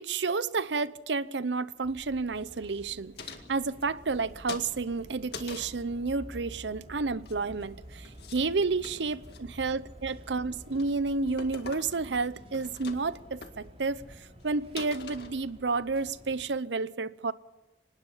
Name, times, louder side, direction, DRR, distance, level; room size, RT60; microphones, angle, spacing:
voice 1, 0.0-17.3, right 4 dB, 85° right, 0.7 m, -31 dB
sound 1, 1.8-16.5, equal, 35° right, 3.8 m, -50 dB
sound 2, 3.2-4.2 4.5-5.8 7.1-7.7 8.0-8.4 8.7-9.4 9.9-10.2 10.6-11.0 11.4-12.2 12.4-13.2 13.4-13.5 14.1-14.2 14.4-14.5 14.8-15.7, left 5 dB, 65° left, 2.0 m, -44 dB
25.0 x 20.0 x 5.7 m
head